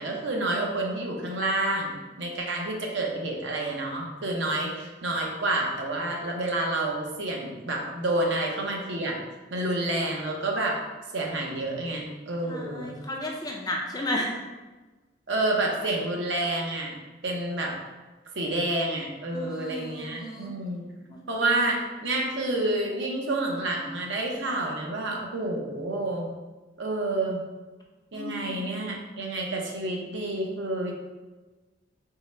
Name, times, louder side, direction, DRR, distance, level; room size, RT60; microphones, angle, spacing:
voice 1, 0.0-9.1 9.5-10.8 11.1-13.0 15.3-16.9 17.2-17.7 18.4-20.8 21.3-26.3 26.8-27.4 28.1-30.9, right 2 dB, 65° right, 0 dB, 0.7 m, -29 dB
voice 2, 12.4-14.3 19.3-20.5 21.1-21.2 28.1-28.7, left 1 dB, 20° left, 0 dB, 0.4 m, -34 dB
3.6 x 2.1 x 4.2 m, 1.2 s
head